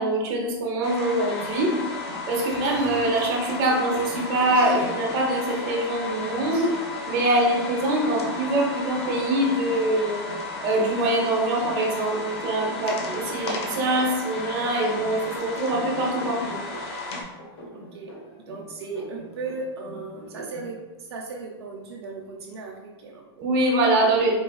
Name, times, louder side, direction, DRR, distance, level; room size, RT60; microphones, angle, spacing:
voice 1, 0.0-1.7 2.3-6.7 7.1-10.2 10.6-16.6 23.4-24.4, right 1 dB, 50° right, -1 dB, 0.9 m, -24 dB
sound 1, 0.8-17.2, left 3 dB, 85° left, 0.7 m, -34 dB
sound 2, 1.4-20.7, equal, 60° left, 1.1 m, -41 dB
voice 2, 17.7-20.8 21.1-23.2, right 3 dB, 85° right, 0 dB, 0.5 m, -36 dB
3.9 x 2.4 x 2.3 m, 1.2 s
hypercardioid pair, 120°, 13 cm